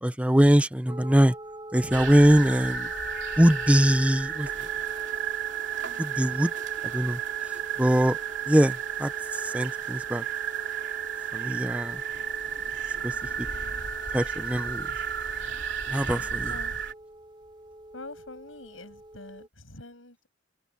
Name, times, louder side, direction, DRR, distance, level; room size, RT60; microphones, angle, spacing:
voice 1, 0.0-1.3 1.7-2.9 3.4-4.5 6.0-6.5 6.9-7.2 7.8-8.2 8.5-10.2 11.3-12.0 13.0-13.1 14.1-14.9 15.9-16.5, equal, 5° right, 0.8 m, -22 dB
sound 1, 0.9-19.5, right 1 dB, 25° right, 3.0 m, -44 dB
sound 2, 1.9-16.9, right 8 dB, 65° right, 3.2 m, -33 dB
voice 2, 16.0-16.8 17.9-20.3, left 2 dB, 90° left, 7.2 m, -45 dB
head